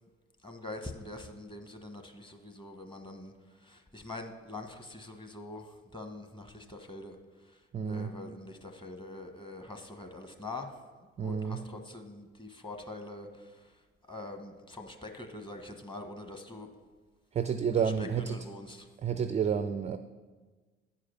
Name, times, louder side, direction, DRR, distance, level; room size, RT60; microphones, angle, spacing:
voice 1, 0.4-10.8 11.2-13.8 14.1-16.7 17.8-18.9, left 2 dB, 15° left, 4 dB, 1.2 m, -44 dB
voice 2, 7.7-8.1 11.2-11.6 17.3-18.4 19.0-20.0, right 7 dB, 20° right, 11 dB, 0.3 m, -30 dB
9.7 x 4.9 x 5.8 m, 1.3 s
figure-of-eight pair, 50°, 35 cm